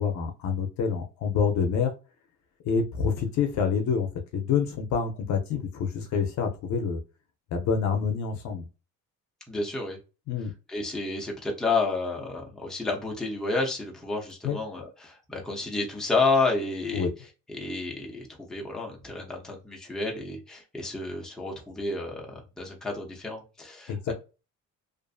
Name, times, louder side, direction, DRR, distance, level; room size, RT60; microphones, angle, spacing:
voice 1, 0.0-1.9 2.6-7.0 7.5-8.7 10.3-10.5 14.4-14.6 16.9-17.1 23.9-24.1, left 6 dB, 60° left, 0.6 m, -27 dB
voice 2, 9.5-10.0 10.7-17.1 17.5-24.1, left 3 dB, ahead, 0.6 m, -30 dB
2.5 x 2.5 x 2.3 m
cardioid pair, 150°, 32 cm